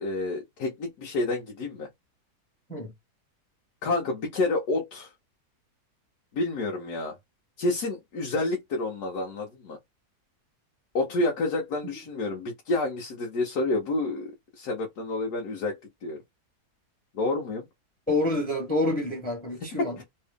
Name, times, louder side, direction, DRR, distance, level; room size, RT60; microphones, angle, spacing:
voice 1, 0.0-1.9 3.8-5.1 6.3-7.2 7.6-9.8 10.9-16.2 17.1-17.6 19.8-20.0, left 2 dB, 75° left, 1.5 m, -29 dB
voice 2, 18.1-20.0, left 2 dB, 5° left, 1.3 m, -27 dB
3.2 x 2.8 x 3.5 m
omnidirectional pair, 1.7 m